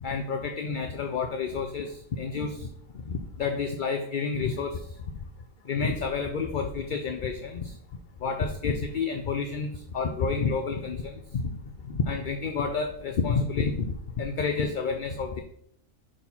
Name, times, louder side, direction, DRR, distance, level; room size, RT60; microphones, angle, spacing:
voice 1, 0.0-2.7 3.1-4.8 5.7-7.7 8.2-11.5 11.9-15.4, left 5 dB, 50° left, 5 dB, 0.6 m, -29 dB
6.4 x 4.5 x 5.5 m, 0.69 s
omnidirectional pair, 1.4 m